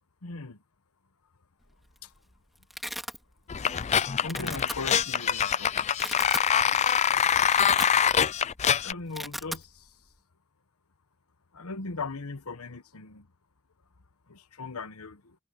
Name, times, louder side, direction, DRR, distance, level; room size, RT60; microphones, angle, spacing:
voice 1, 0.2-0.6 2.0-2.1 3.6-5.9 7.1-7.2 8.7-9.9 11.5-13.3 14.3-15.4, left 3 dB, 75° left, 1.2 m, -39 dB
Domestic sounds home sounds, 1.7-2.0 2.3-3.2 3.6-3.9 4.2-4.7 5.4-5.5 5.8-6.5 6.9-7.0 7.3-8.3 8.5-8.7 9.0-9.6, equal, ahead, 2.7 m, -37 dB
sound 1, 3.5-8.9, left 8 dB, 30° left, 0.4 m, -24 dB
head